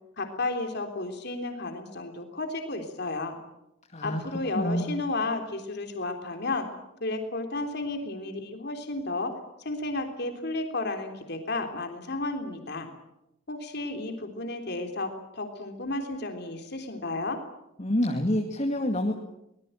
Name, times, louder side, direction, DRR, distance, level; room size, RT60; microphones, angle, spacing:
voice 1, 0.2-3.4 4.0-6.7 7.0-12.9 13.5-17.4, left 2 dB, 55° left, 5 dB, 3.5 m, -32 dB
voice 2, 4.5-4.9 17.8-19.1, left 1 dB, 35° left, 3 dB, 2.2 m, -27 dB
24.0 x 20.0 x 9.1 m, 0.86 s
head